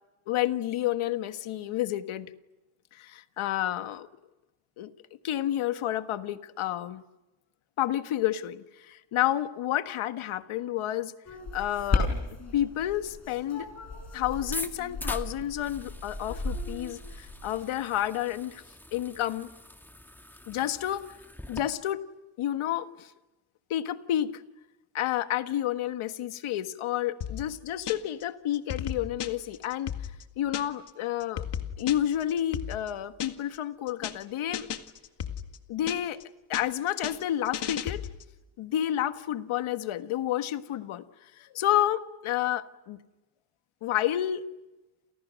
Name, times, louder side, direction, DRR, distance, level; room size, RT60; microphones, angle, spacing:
voice 1, 0.3-2.3 2.9-4.1 4.8-4.9 5.2-7.0 7.8-11.1 11.5-12.1 12.5-13.7 14.1-18.6 18.9-19.5 20.5-21.0 21.5-22.0 22.4-23.1 23.7-24.4 24.9-29.9 30.4-31.4 31.8-34.7 35.7-36.2 36.5-38.0 38.6-43.0 43.8-44.5, left 12 dB, 80° left, 9 dB, 1.6 m, -30 dB
sound 1, 11.3-17.7, left 3 dB, 35° left, 6.9 m, -34 dB
sound 2, 14.5-21.6, left 1 dB, 5° left, 1.9 m, -43 dB
sound 3, 27.2-28.2 28.5-30.9 31.2-33.6 33.9-34.2 34.5-36.2 36.5-38.3, left 9 dB, 55° left, 2.0 m, -36 dB
29.5 x 29.0 x 6.4 m, 1.1 s
cardioid pair, 135°, 48 cm